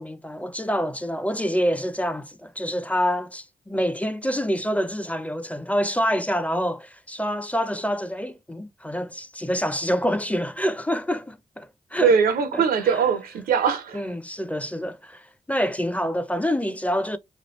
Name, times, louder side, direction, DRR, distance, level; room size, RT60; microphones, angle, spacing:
voice 1, 0.0-12.2 12.5-13.0 13.9-17.2, equal, 10° left, 0.5 m, -27 dB
voice 2, 12.0-14.0, right 6 dB, 90° right, 0.6 m, -21 dB
3.0 x 2.3 x 3.1 m
supercardioid pair, 45°, 15 cm